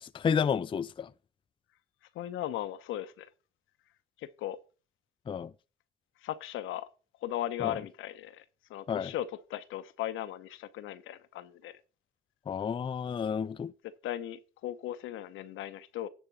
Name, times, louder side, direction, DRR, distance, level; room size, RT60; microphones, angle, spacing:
voice 1, 0.0-1.1 5.3-5.5 7.6-7.8 8.9-9.1 12.5-13.7, left 7 dB, 25° left, 0.4 m, -31 dB
voice 2, 2.1-3.3 4.2-4.6 6.2-6.9 7.2-8.4 8.7-11.8 13.8-16.1, left 12 dB, 85° left, 0.8 m, -37 dB
10.5 x 3.6 x 7.1 m
cardioid pair, 90°, 20 cm